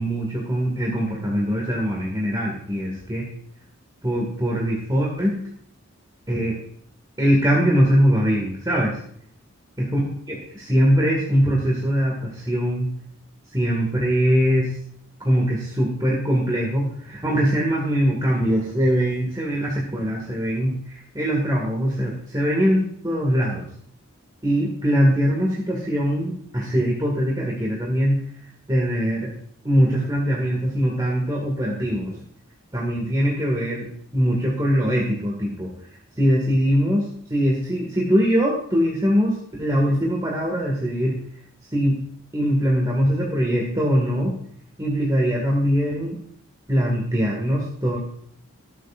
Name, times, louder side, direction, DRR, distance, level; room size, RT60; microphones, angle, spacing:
voice 1, 0.0-3.3 4.0-5.4 6.3-6.6 7.2-9.0 9.8-12.9 13.5-14.7 15.2-23.7 24.4-28.2 28.7-29.3 29.6-32.1 32.7-33.9 34.1-35.7 36.2-41.2 41.7-42.0 42.3-44.3 44.8-46.2 46.7-48.0, equal, 15° right, -3 dB, 2.0 m, -22 dB
23.0 x 8.1 x 2.5 m, 0.62 s
head